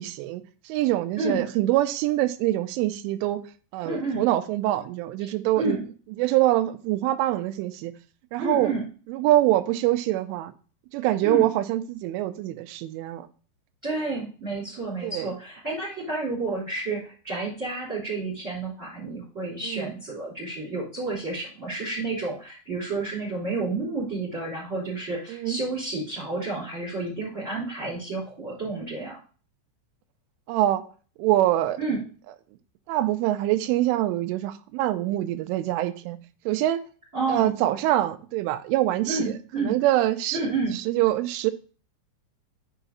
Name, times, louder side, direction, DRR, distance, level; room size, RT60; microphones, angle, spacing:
voice 1, 0.0-3.4 3.7-5.8 6.2-7.9 8.3-8.7 9.1-10.5 10.9-13.3 15.0-15.3 19.6-19.9 25.3-25.6 30.5-30.8 31.2-31.8 32.9-36.2 36.5-36.8 37.3-40.4 40.7-41.5, right 14 dB, 90° right, 3.1 m, -24 dB
voice 2, 3.8-4.3 5.2-5.3 5.6-5.8 8.4-8.8 11.2-11.4 13.8-29.2 31.8-32.0 37.1-37.5 39.1-39.8 40.3-40.8, right 3 dB, 15° right, 3.3 m, -30 dB
8.1 x 5.7 x 4.0 m
omnidirectional pair, 5.5 m